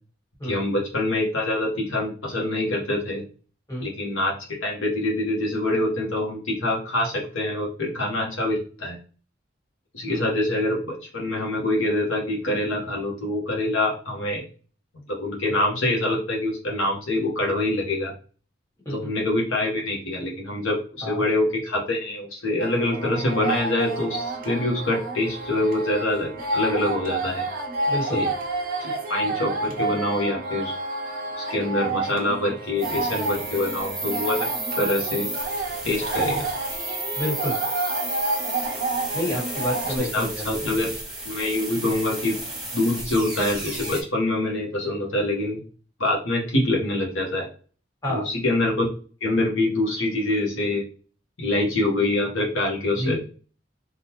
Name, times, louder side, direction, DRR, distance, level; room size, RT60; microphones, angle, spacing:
voice 1, 0.4-3.2 3.8-4.3 4.6-9.0 9.9-14.4 15.1-18.1 18.9-27.5 28.0-28.3 28.8-30.8 31.4-34.5 34.8-35.3 35.8-36.5 40.0-40.9 41.2-42.4 42.7-45.6 46.0-47.5 48.1-48.8 49.2-50.8 51.4-53.2, left 1 dB, 85° left, -2 dB, 1.2 m, -25 dB
sound 1, 22.6-40.0, right 2 dB, 45° right, 0.8 m, -29 dB
voice 2, 27.9-28.2 37.1-37.6 39.1-40.7 48.0-48.3 52.9-53.2, equal, 15° left, -4 dB, 1.6 m, -29 dB
sound 2, 32.8-44.0, right 2 dB, ahead, 1.1 m, -33 dB
3.7 x 2.4 x 2.9 m, 0.39 s
head